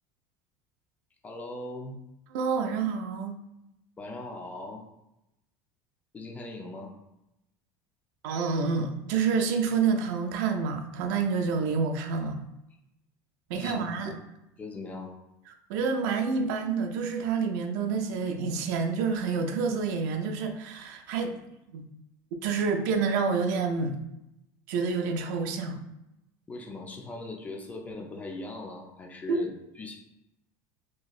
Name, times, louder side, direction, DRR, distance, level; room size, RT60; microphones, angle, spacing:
voice 1, 1.2-2.0 4.0-4.8 6.1-6.9 13.5-13.9 14.6-15.1 26.5-29.5 29.8-30.0, left 2 dB, 15° left, 1 dB, 0.5 m, -39 dB
voice 2, 2.3-3.4 8.2-12.4 13.5-14.1 15.5-21.4 21.7-21.9 22.4-24.0 24.7-25.9 29.3-29.4, right 5 dB, 75° right, 5 dB, 0.4 m, -28 dB
3.0 x 2.6 x 2.4 m, 0.89 s
cardioid pair, 150°, 10 cm